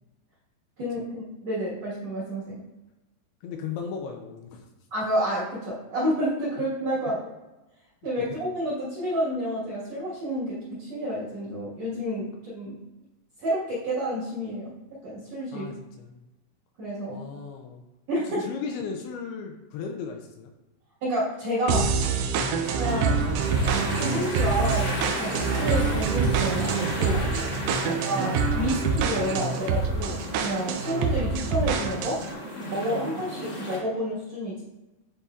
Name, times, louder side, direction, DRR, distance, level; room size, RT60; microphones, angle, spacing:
voice 1, 0.8-2.6 4.9-7.3 8.0-12.8 13.4-14.7 15.0-15.7 16.8-17.3 18.1-18.5 21.0-21.9 22.6-23.2 24.0-27.3 27.8-32.2 32.6-34.6, equal, 55° right, -8 dB, 2.0 m, -29 dB
voice 2, 3.4-4.6 8.2-8.3 15.5-16.2 17.1-17.8 18.3-20.5 22.5-22.7 27.8-28.0 32.9-33.1, left 6 dB, 80° left, 3 dB, 2.5 m, -36 dB
sound 1, 21.7-32.3, right 5 dB, 85° right, 2.1 m, -26 dB
sound 2, 22.6-33.8, left 1 dB, 60° left, 0.7 m, -36 dB
sound 3, 22.9-28.1, equal, 30° left, 1.0 m, -45 dB
9.8 x 4.2 x 2.4 m, 1.0 s
omnidirectional pair, 4.9 m